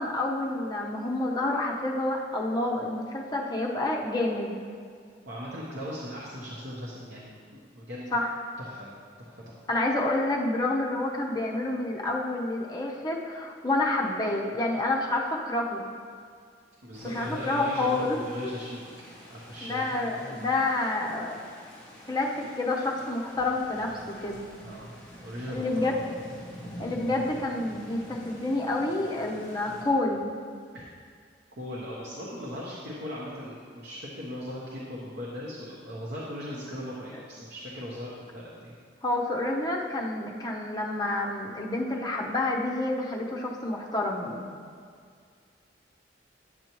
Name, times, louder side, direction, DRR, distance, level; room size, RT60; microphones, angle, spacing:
voice 1, 0.0-4.6 8.1-8.3 9.7-15.8 17.0-18.2 18.4-18.5 19.6-21.4 22.1-24.4 25.5-26.1 26.8-30.3 39.0-44.5, left 2 dB, 20° left, -2 dB, 0.8 m, -28 dB
voice 2, 5.3-8.2 8.6-9.6 16.8-18.8 19.3-19.8 20.1-20.5 24.6-24.9 25.2-26.1 30.7-30.9 31.5-38.8, equal, 60° right, -6 dB, 1.0 m, -38 dB
sound 1, 16.9-29.8, equal, 5° left, 1.8 m, -47 dB
9.6 x 6.7 x 3.0 m, 2.1 s
head